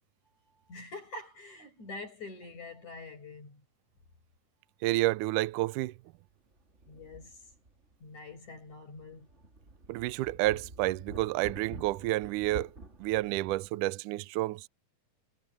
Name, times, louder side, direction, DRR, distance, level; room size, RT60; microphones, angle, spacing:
voice 1, 0.7-3.6 6.9-7.5 8.0-9.3, left 3 dB, 55° left, 7.2 m, -45 dB
voice 2, 4.8-5.9 9.9-12.7 13.0-14.7, right 18 dB, 80° right, 2.0 m, -30 dB
sound 1, 5.5-5.6 6.5-8.0 8.3-8.4 9.0-13.7, right 2 dB, 25° right, 2.3 m, -48 dB
omnidirectional pair, 3.9 m